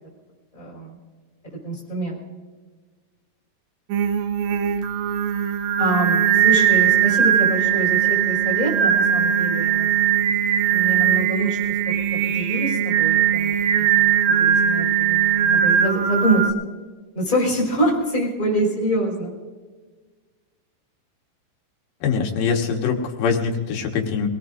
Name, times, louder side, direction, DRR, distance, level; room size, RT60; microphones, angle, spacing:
voice 1, 0.5-1.0 1.6-2.2 5.8-10.3 10.7-11.6 12.3-16.5 17.1-19.3, right 1 dB, 10° left, -5 dB, 4.9 m, -25 dB
Singing, 3.9-16.5, right 9 dB, 90° right, 2.5 m, -20 dB
voice 2, 22.0-24.3, left 6 dB, 75° left, 2 dB, 3.2 m, -23 dB
26.0 x 18.0 x 2.6 m, 1.4 s
omnidirectional pair, 4.1 m